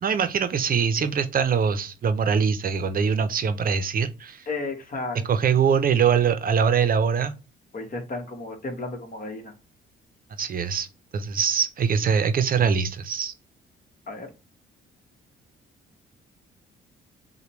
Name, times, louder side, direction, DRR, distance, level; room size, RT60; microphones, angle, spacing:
voice 1, 0.0-4.5 5.3-7.3 10.4-10.9 11.1-13.3, right 6 dB, 45° right, 0.6 m, -23 dB
voice 2, 4.5-5.5 7.7-9.6 14.1-14.3, left 3 dB, 45° left, 1.2 m, -33 dB
6.5 x 2.2 x 3.0 m
cardioid pair, 90°, 20 cm